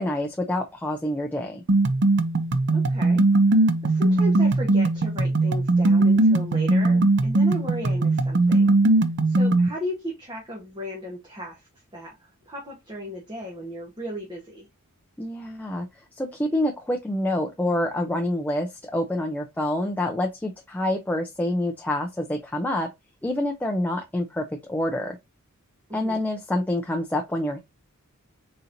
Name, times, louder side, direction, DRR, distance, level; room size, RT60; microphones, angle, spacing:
voice 1, 0.0-1.6 15.2-15.9 16.2-22.9 23.2-25.2 25.9-27.6, left 1 dB, 5° left, 0.4 m, -27 dB
sound 1, 1.7-9.7, right 2 dB, 50° right, 0.5 m, -20 dB
voice 2, 2.7-8.8 9.2-14.7 25.9-26.2, equal, 20° right, 1.0 m, -36 dB
4.3 x 3.9 x 2.5 m
head